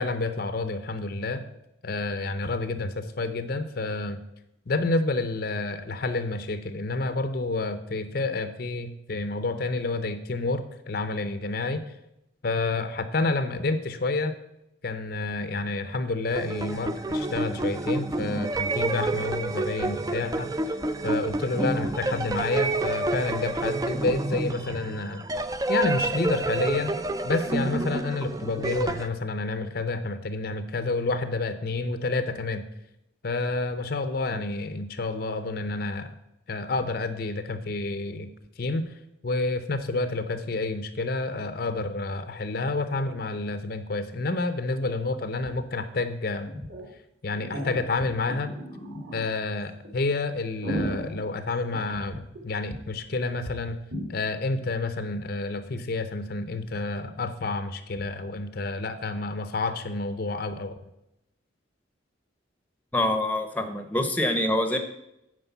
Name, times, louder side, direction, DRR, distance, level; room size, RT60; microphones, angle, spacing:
voice 1, 0.0-1.5 1.8-4.2 4.7-11.8 12.4-14.3 14.8-20.8 21.0-25.2 25.7-27.0 27.2-32.6 33.2-36.1 36.5-38.3 38.6-46.5 47.2-48.5 49.1-53.8 54.1-60.8, left 3 dB, 50° left, 10 dB, 0.6 m, -29 dB
sound 1, 16.3-29.1, right 2 dB, 20° right, 0.4 m, -29 dB
sound 2, 45.5-45.6 45.8-45.9 46.5-46.9 47.3-49.3 49.8-49.9 50.4-52.4 52.7-52.8 53.1-53.2 53.4-53.5 53.9-54.1, equal, 55° right, 2.6 m, -35 dB
voice 2, 62.9-64.8, left 1 dB, 10° left, 7 dB, 0.7 m, -25 dB
9.7 x 4.8 x 6.9 m, 0.84 s
head